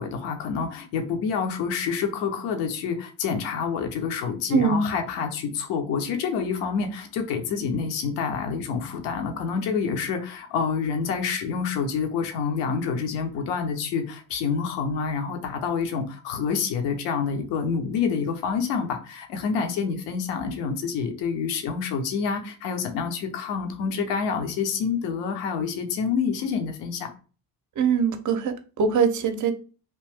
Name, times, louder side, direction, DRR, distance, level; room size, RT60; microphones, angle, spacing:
voice 1, 0.0-27.1, left 6 dB, 60° left, 5 dB, 0.9 m, -27 dB
voice 2, 4.5-4.9 27.8-29.5, right 6 dB, 40° right, 8 dB, 0.7 m, -22 dB
3.1 x 2.6 x 3.4 m, 0.36 s
hypercardioid pair, 55°, 50 cm